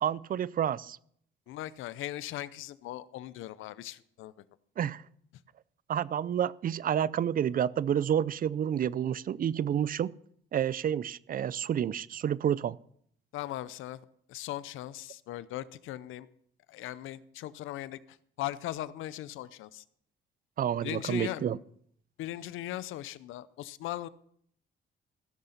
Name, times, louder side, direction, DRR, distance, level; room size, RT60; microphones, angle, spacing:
voice 1, 0.0-1.0 4.8-5.0 5.9-10.1 10.5-12.8 20.6-21.6, right 9 dB, 45° right, 21 dB, 0.5 m, -29 dB
voice 2, 1.5-4.3 13.3-14.0 14.3-16.3 16.7-19.8 20.8-21.6 22.2-24.1, left 14 dB, 85° left, 17 dB, 0.6 m, -39 dB
16.0 x 6.5 x 5.7 m, 0.66 s
cardioid pair, 90°, 20 cm